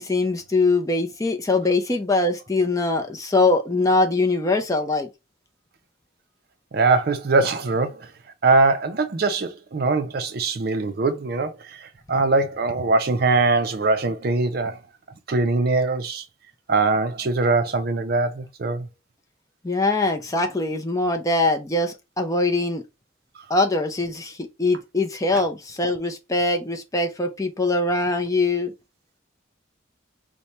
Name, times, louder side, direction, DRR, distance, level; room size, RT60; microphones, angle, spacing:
voice 1, 0.0-5.1 19.6-22.8 23.5-28.7, left 2 dB, 15° left, 0.5 m, -22 dB
voice 2, 6.7-8.1 8.4-14.8 15.3-16.2 16.7-18.9 23.4-23.5, right 3 dB, 50° right, 0.5 m, -22 dB
4.2 x 2.1 x 3.1 m
head